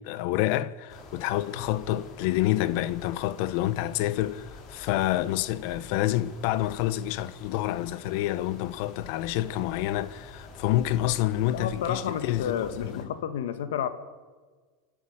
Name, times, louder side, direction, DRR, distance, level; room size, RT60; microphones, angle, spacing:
voice 1, 0.0-13.1, left 14 dB, 65° left, 1.1 m, -28 dB
sound 1, 0.9-13.0, left 3 dB, 40° left, 5.0 m, -47 dB
voice 2, 11.5-13.9, left 9 dB, 85° left, 2.3 m, -31 dB
28.0 x 12.5 x 10.0 m
supercardioid pair, 125°, 0 cm